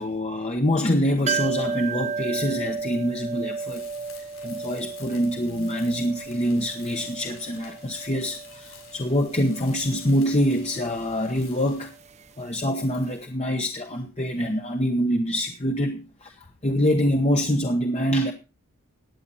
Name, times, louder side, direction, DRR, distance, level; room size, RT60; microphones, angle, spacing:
voice 1, 0.0-3.8 4.2-11.9 12.4-18.3, equal, 30° left, 1.1 m, -25 dB
sound 1, 1.3-12.9 13.1-13.2, right 5 dB, 30° right, 0.7 m, -34 dB
Tools, 3.6-12.0, left 8 dB, 70° left, 6.8 m, -50 dB
16.0 x 9.8 x 4.2 m
head